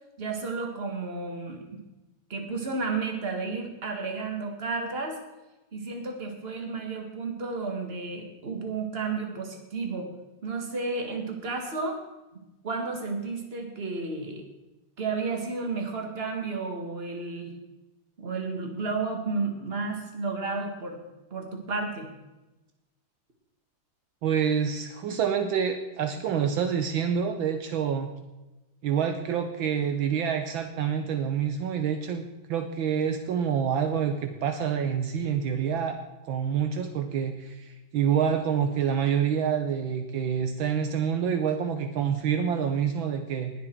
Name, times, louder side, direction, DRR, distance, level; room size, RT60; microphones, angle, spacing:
voice 1, 0.2-1.8 2.3-5.2 5.7-10.1 10.4-12.0 12.6-14.4 15.0-17.5 18.2-21.0 21.3-22.1, right 4 dB, 30° right, 3 dB, 1.9 m, -32 dB
voice 2, 24.2-28.1 28.8-36.0 36.2-43.5, right 7 dB, 75° right, 7 dB, 1.6 m, -27 dB
19.5 x 7.7 x 4.6 m, 1.0 s
omnidirectional pair, 2.3 m